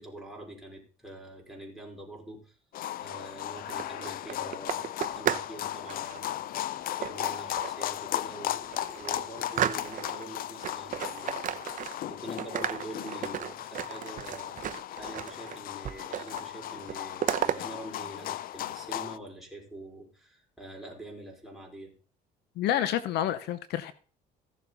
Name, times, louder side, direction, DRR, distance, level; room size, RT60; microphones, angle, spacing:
voice 1, 0.0-2.6 3.0-6.5 7.0-14.6 15.0-21.9, right 1 dB, ahead, 4.8 m, -45 dB
sound 1, 2.7-19.2, left 12 dB, 60° left, 0.5 m, -36 dB
sound 2, 3.6-5.5 5.8-6.2 7.0-7.8 8.3-8.4 8.7-10.3 10.6-12.1 12.4-15.6 15.8-16.5 16.7-17.6, right 10 dB, 50° right, 0.8 m, -33 dB
voice 2, 22.6-23.9, left 11 dB, 80° left, 0.8 m, -28 dB
15.5 x 7.1 x 4.0 m
cardioid pair, 110°, 17 cm